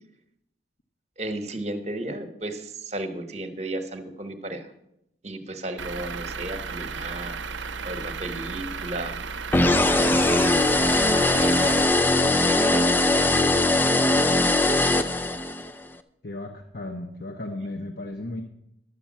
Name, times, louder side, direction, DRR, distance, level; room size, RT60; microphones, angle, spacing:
voice 1, 1.2-4.7 5.2-7.4 7.8-9.3 9.8-13.5, right 1 dB, 35° right, 8 dB, 1.2 m, -34 dB
Truck / Idling, 5.8-11.8, right 5 dB, 80° right, 0.7 m, -34 dB
sound 1, 9.5-15.7, left 2 dB, 10° left, 0.4 m, -20 dB
voice 2, 16.2-18.4, left 2 dB, 55° left, 3 dB, 0.9 m, -35 dB
11.5 x 6.8 x 7.3 m, 0.79 s
head